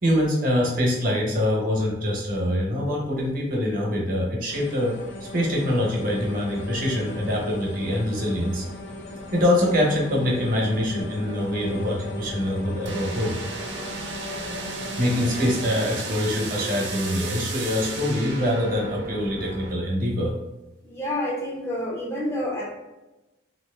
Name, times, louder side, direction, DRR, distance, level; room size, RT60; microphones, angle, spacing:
voice 1, 0.0-4.9 5.3-8.6 9.3-13.3 15.0-20.3, left 1 dB, 45° right, -2 dB, 1.0 m, -24 dB
sound 1, 4.5-16.0, left 1 dB, 65° left, 0.5 m, -37 dB
sound 2, 12.9-19.7, right 3 dB, 60° right, 0.6 m, -34 dB
voice 2, 20.8-22.7, left 1 dB, 15° left, -2 dB, 0.5 m, -28 dB
3.0 x 2.9 x 3.4 m, 1.0 s
head